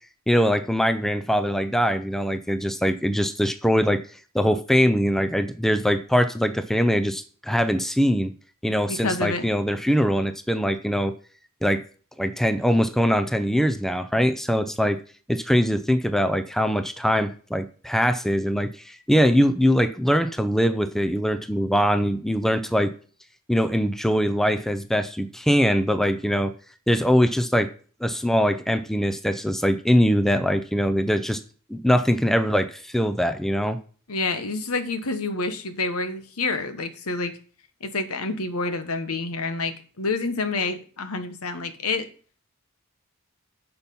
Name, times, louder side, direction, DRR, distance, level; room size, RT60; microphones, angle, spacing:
voice 1, 0.3-4.0 4.3-8.3 8.6-11.1 11.6-11.8 12.2-15.0 15.3-22.9 23.5-26.5 26.9-27.7 28.0-31.4 31.7-33.8, equal, ahead, 9 dB, 0.5 m, -22 dB
voice 2, 8.9-9.4 34.1-37.3 37.8-42.1, left 3 dB, 80° left, 9 dB, 1.1 m, -28 dB
8.7 x 5.7 x 5.4 m, 0.42 s
head